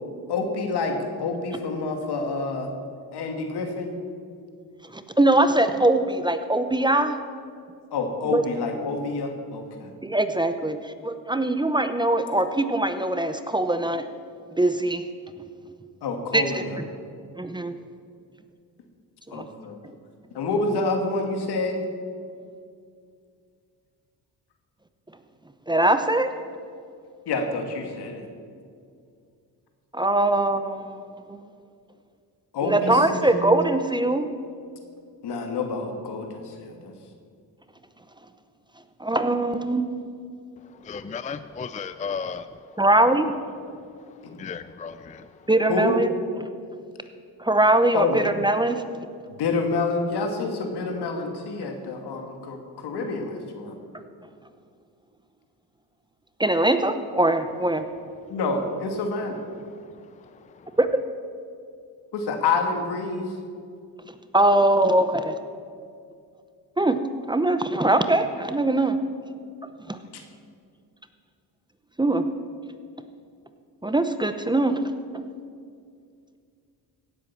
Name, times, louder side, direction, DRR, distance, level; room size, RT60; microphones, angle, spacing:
voice 1, 0.3-2.7 3.1-3.9 7.9-9.9 16.0-16.8 19.3-19.8 20.3-21.8 27.3-28.3 32.5-33.6 35.2-36.9 44.2-44.4 45.7-46.0 47.9-48.2 49.3-53.8 58.3-59.4 62.1-63.4 70.1-70.2, left 3 dB, 75° left, 4 dB, 2.3 m, -28 dB
voice 2, 4.9-7.1 8.3-8.4 10.0-14.1 14.6-15.0 16.3-16.6 17.4-17.7 19.3-19.4 25.7-26.3 29.9-31.0 31.3-31.4 32.6-34.3 39.0-40.0 42.8-43.3 45.5-46.1 46.4-46.5 47.4-48.8 56.4-57.8 60.8-60.9 64.3-65.4 66.8-67.0 67.3-69.0 69.9-70.0 72.0-72.3 73.8-74.8, right 2 dB, 10° right, 9 dB, 0.8 m, -22 dB
voice 3, 40.6-42.8 43.7-45.5 58.2-58.4 59.6-60.8, left 6 dB, 20° left, 12 dB, 0.4 m, -37 dB
17.0 x 8.2 x 7.4 m, 2.3 s
cardioid pair, 90°, 40 cm